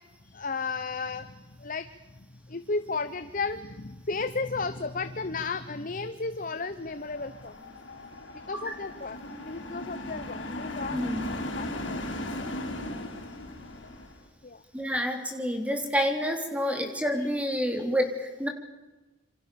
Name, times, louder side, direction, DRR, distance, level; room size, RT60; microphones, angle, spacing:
voice 1, 0.2-1.9 2.2-7.7 8.3-11.0 11.6-12.0 12.9-13.0 14.4-14.6 16.7-16.8 17.2-17.3, left 4 dB, 45° left, 11 dB, 1.0 m, -34 dB
sound 1, 6.8-14.2, left 1 dB, 85° left, 4.8 m, -37 dB
voice 2, 10.9-11.4 14.7-18.5, equal, 5° right, 5 dB, 3.5 m, -28 dB
27.5 x 26.5 x 7.1 m, 1.1 s
head